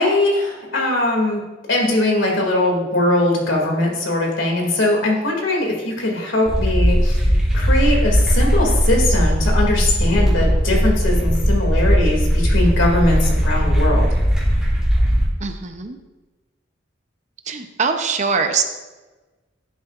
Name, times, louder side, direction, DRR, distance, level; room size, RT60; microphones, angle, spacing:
voice 1, 0.0-1.4 1.7-7.2 7.5-14.1, left 2 dB, 80° left, 0 dB, 2.5 m, -20 dB
sound 1, 6.4-15.3, equal, 5° right, 3.0 m, -18 dB
voice 2, 15.4-16.0 17.5-18.6, right 5 dB, 40° right, 6 dB, 0.7 m, -22 dB
11.0 x 9.5 x 2.5 m, 1.2 s
head